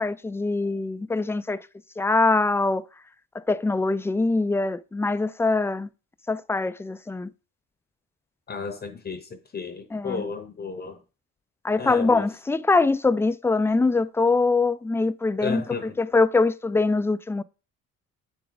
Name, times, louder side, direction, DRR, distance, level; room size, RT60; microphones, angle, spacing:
voice 1, 0.0-1.6 2.0-2.8 3.3-5.9 6.3-7.3 9.9-10.2 11.6-17.4, left 3 dB, 10° left, 0.3 m, -23 dB
voice 2, 8.5-11.0 11.8-12.3 15.4-16.0, left 5 dB, 35° left, 0.8 m, -33 dB
6.9 x 4.6 x 3.9 m
cardioid pair, 90°, 30 cm